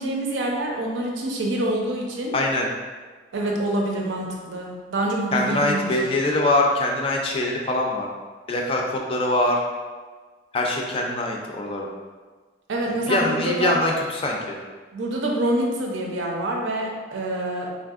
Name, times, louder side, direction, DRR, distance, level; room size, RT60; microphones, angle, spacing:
voice 1, 0.0-2.4 3.3-5.9 12.7-13.8 14.9-17.7, right 1 dB, 85° right, -1 dB, 0.6 m, -26 dB
voice 2, 2.3-2.7 5.3-8.1 8.5-8.8 9.1-9.6 10.5-11.9 12.9-14.6, left 2 dB, 30° left, 0 dB, 0.3 m, -23 dB
3.4 x 2.7 x 2.4 m, 1.4 s
head